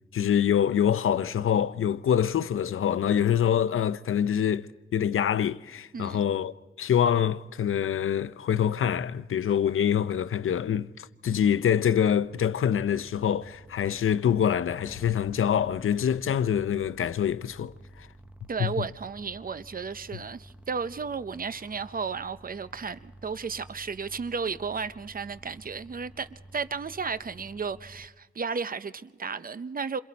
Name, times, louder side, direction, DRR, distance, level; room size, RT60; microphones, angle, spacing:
voice 1, 0.1-18.1 18.6-18.7, left 9 dB, 75° left, 0.6 m, -25 dB
voice 2, 5.9-6.2 18.5-30.0, right 5 dB, 45° right, 0.7 m, -34 dB
sound 1, 11.3-28.1, right 1 dB, 5° right, 0.9 m, -51 dB
sound 2, 19.9-21.1, left 3 dB, 35° left, 5.9 m, -55 dB
29.0 x 26.5 x 4.2 m
wide cardioid pair, 100°, 21 cm